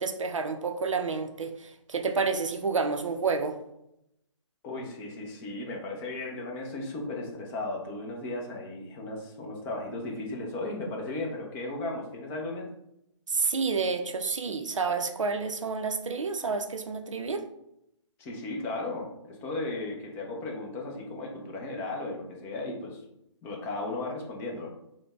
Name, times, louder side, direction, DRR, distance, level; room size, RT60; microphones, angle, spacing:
voice 1, 0.0-3.6 13.3-17.4, right 4 dB, 90° right, 7 dB, 0.5 m, -29 dB
voice 2, 4.6-12.7 18.2-23.0 23.4-24.7, left 2 dB, 15° left, 0 dB, 0.5 m, -35 dB
3.9 x 2.1 x 3.4 m, 0.82 s
hypercardioid pair, 150°, 16 cm